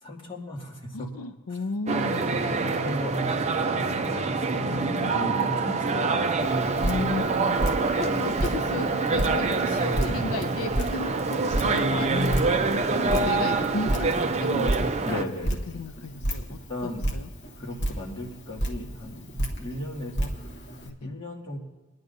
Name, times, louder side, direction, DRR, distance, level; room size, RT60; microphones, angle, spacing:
voice 1, 0.0-1.1 1.5-1.6 2.0-4.7 5.1-6.8 7.7-8.0 12.9-13.6 15.0-15.8 16.5-17.1 17.6-20.3 21.0-21.6, left 1 dB, 25° left, -4 dB, 2.2 m, -37 dB
voice 2, 0.9-2.9 3.7-5.6 6.8-7.7 8.0-12.6 13.1-14.1 14.4-15.3 15.7-17.3 20.9-21.1, left 3 dB, 85° left, 9 dB, 0.5 m, -34 dB
sound 1, 1.9-15.2, right 4 dB, 35° right, 0.5 m, -26 dB
Drip, 6.4-20.9, right 1 dB, 55° left, 1.3 m, -32 dB
22.0 x 10.5 x 2.7 m, 1.2 s
head